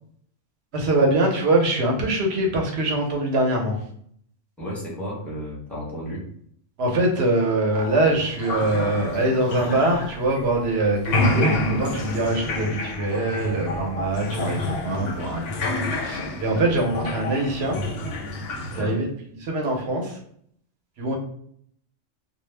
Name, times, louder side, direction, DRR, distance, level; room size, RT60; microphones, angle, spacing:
voice 1, 0.7-3.8 6.8-17.8 18.7-19.1 19.4-20.2 21.0-21.2, right 2 dB, 60° right, 1 dB, 0.9 m, -23 dB
voice 2, 4.6-6.3 16.5-16.7 18.7-19.0, equal, ahead, -6 dB, 0.7 m, -33 dB
sound 1, 7.7-10.7 11.0-18.8, left 1 dB, 60° left, 0.7 m, -28 dB
2.3 x 2.0 x 3.2 m, 0.64 s
omnidirectional pair, 1.3 m